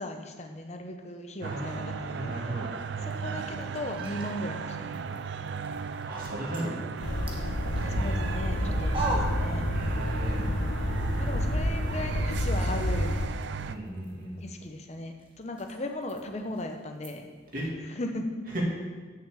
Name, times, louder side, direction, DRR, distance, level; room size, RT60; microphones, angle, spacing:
voice 1, 0.0-2.4 3.0-5.0 7.8-9.7 11.2-13.1 14.4-17.3 17.8-18.3, left 1 dB, 35° left, 4 dB, 0.8 m, -37 dB
voice 2, 1.4-2.7 6.0-6.7 9.7-10.6 13.7-14.4 17.5-17.7 18.5-18.6, right 1 dB, 45° right, -4 dB, 2.5 m, -36 dB
sound 1, 1.4-13.7, right 6 dB, 65° right, 0.4 m, -36 dB
sound 2, 3.0-10.2 10.5-17.7, right 1 dB, 25° right, 1.1 m, -43 dB
sound 3, 7.0-13.3, left 1 dB, 75° left, 0.9 m, -29 dB
6.9 x 6.2 x 7.3 m, 1.4 s
head